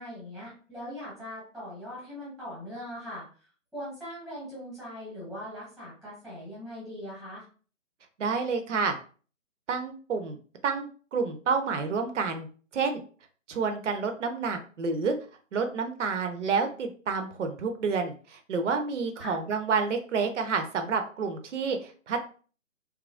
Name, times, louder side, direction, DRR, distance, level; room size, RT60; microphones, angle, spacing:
voice 1, 0.0-3.2 3.7-7.4 19.2-19.4, equal, ahead, -9 dB, 0.9 m, -40 dB
voice 2, 8.2-8.9 9.7-10.4 10.6-12.5 12.7-13.0 13.5-15.2 15.5-22.2, right 5 dB, 65° right, 6 dB, 0.6 m, -29 dB
2.9 x 2.4 x 2.4 m, 0.40 s
figure-of-eight pair, 145°, 39 cm